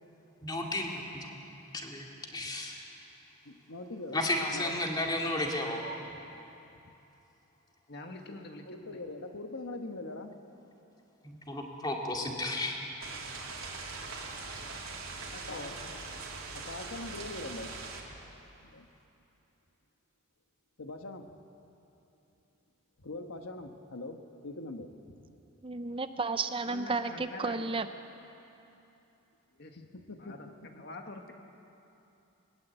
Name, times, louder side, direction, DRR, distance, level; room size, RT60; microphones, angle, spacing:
voice 1, 0.4-1.4 1.7-2.1 2.3-2.8 4.1-5.8 11.2-12.8, left 1 dB, 20° left, 0 dB, 2.4 m, -33 dB
voice 2, 3.4-4.2 4.5-4.8 8.3-8.4 8.7-10.4 14.3-14.4 15.2-15.8 16.5-17.7 18.6-18.9 20.8-21.4 23.0-24.9 29.8-30.5, left 2 dB, 85° left, 6 dB, 1.3 m, -42 dB
voice 3, 7.9-9.0 15.3-15.7 16.1-16.2 26.7-27.7 29.5-29.8 30.2-31.3, left 2 dB, 50° left, 4 dB, 1.7 m, -46 dB
sound 1, 13.0-18.0, right 3 dB, 85° right, 3.2 m, -41 dB
voice 4, 25.6-27.9, right 4 dB, 25° right, 10 dB, 0.5 m, -32 dB
20.5 x 20.0 x 8.1 m, 2.9 s
head